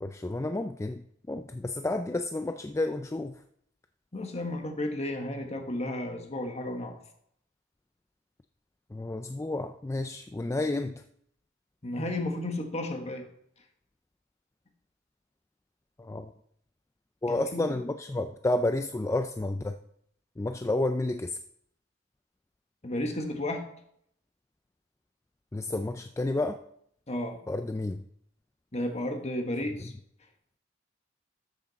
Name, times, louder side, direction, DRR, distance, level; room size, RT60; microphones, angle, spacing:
voice 1, 0.0-3.4 8.9-11.0 16.0-16.3 17.2-19.8 20.4-21.4 25.5-26.6 27.5-28.0 29.8-29.9, left 2 dB, 15° left, 7 dB, 0.3 m, -31 dB
voice 2, 4.1-7.0 11.8-13.2 17.3-17.8 22.8-23.7 27.1-27.4 28.7-29.9, left 1 dB, 35° left, 4 dB, 1.4 m, -33 dB
13.0 x 6.4 x 4.1 m, 0.70 s
head